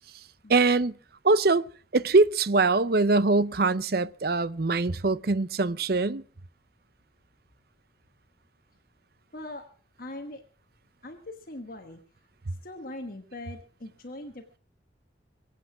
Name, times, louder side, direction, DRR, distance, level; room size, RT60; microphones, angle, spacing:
voice 1, 0.5-0.9 1.2-1.6 1.9-6.2, right 3 dB, 55° right, 0.6 m, -23 dB
voice 2, 9.3-9.6 10.0-10.4 11.0-12.0 12.6-14.6, left 1 dB, 50° left, 1.4 m, -41 dB
23.5 x 8.5 x 6.0 m
head